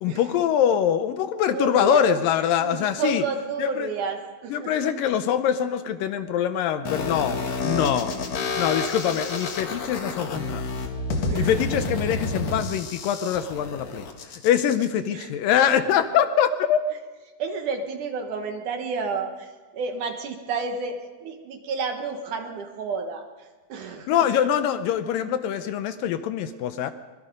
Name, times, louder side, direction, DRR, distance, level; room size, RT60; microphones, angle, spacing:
voice 1, 0.0-3.2 3.6-3.9 4.5-8.2 8.6-10.6 11.4-14.1 14.4-16.8 24.1-26.9, left 9 dB, 75° left, 10 dB, 2.2 m, -23 dB
voice 2, 1.5-2.0 2.6-4.7 11.3-11.7 15.1-15.3 15.6-15.7 17.4-24.3, right 4 dB, 65° right, 5 dB, 2.5 m, -31 dB
sound 1, 6.9-14.9, left 3 dB, 50° left, 2.5 m, -29 dB
24.0 x 21.0 x 5.3 m, 1.3 s
omnidirectional pair, 4.3 m